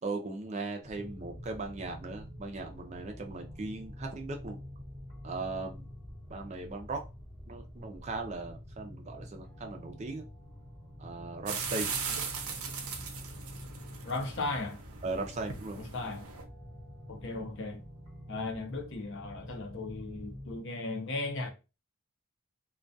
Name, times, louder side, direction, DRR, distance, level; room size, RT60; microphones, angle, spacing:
voice 1, 0.0-4.6 5.2-5.9 6.3-7.0 7.5-10.2 11.0-11.9 15.0-15.8, right 3 dB, 30° right, 0.4 m, -38 dB
sound 1, 0.8-20.6, equal, 15° right, 0.8 m, -47 dB
sound 2, 11.5-16.4, right 6 dB, 85° right, 0.6 m, -39 dB
voice 2, 14.0-14.8 15.8-16.3 17.1-17.8 18.3-21.5, left 3 dB, 55° left, 0.5 m, -36 dB
2.2 x 2.2 x 2.5 m
head